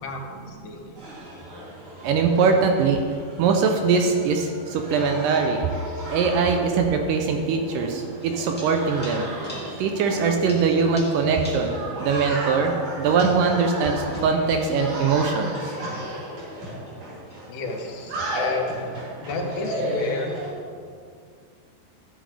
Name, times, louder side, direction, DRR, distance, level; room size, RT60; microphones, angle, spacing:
voice 1, 0.0-1.0 17.5-18.9 19.2-20.3, left 3 dB, 90° left, 2 dB, 3.0 m, -32 dB
sound 1, 0.9-20.5, right 1 dB, 50° right, 4.2 m, -34 dB
voice 2, 2.0-3.0 3.4-5.6 6.1-9.3 9.8-12.7 13.0-15.7, right 5 dB, 80° right, 4 dB, 2.1 m, -22 dB
sound 2, 8.2-10.2 10.5-12.1 12.4-12.5 13.7-15.9 16.4-16.5 16.9-17.0 17.3-17.5 17.8-18.0 18.3-18.5 19.5-19.7, equal, 5° left, 1.4 m, -46 dB
13.5 x 7.6 x 3.3 m, 2.2 s
omnidirectional pair, 4.3 m